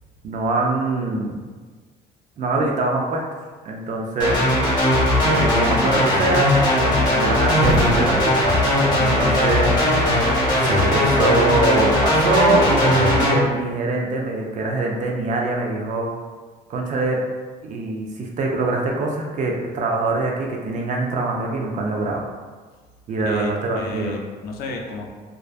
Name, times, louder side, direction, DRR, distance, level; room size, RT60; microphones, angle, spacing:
voice 1, 0.2-1.4 2.4-3.2 3.6-4.4 5.2-8.5 9.0-9.7 10.6-16.1 16.7-17.2 17.6-22.2 23.1-24.2, right 2 dB, 45° right, 0 dB, 0.4 m, -23 dB
sound 1, 4.2-13.3, left 1 dB, 25° left, 0.8 m, -18 dB
sound 2, 7.6-9.6, equal, 75° right, 1.1 m, -28 dB
voice 2, 23.2-25.1, left 2 dB, 65° left, 1 dB, 0.4 m, -32 dB
2.4 x 2.2 x 2.4 m, 1.4 s
cardioid pair, 110°, 17 cm